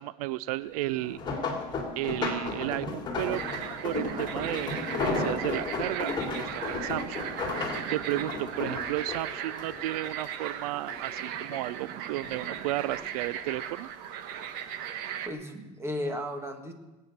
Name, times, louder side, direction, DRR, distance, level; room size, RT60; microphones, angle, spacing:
voice 1, 0.0-1.4 2.0-3.4 3.8-7.2 7.5-13.9, right 16 dB, 80° right, 18 dB, 0.5 m, -33 dB
sound 1, 0.9-10.5 10.9-11.8 12.2-13.6 14.3-14.6 15.0-15.1, left 3 dB, 25° left, 3.4 m, -34 dB
sound 2, 3.3-15.3, right 9 dB, 55° right, 1.3 m, -37 dB
voice 2, 15.3-16.7, equal, 15° right, 5 dB, 2.0 m, -35 dB
20.5 x 9.2 x 6.5 m, 1.1 s
supercardioid pair, 125°, 19 cm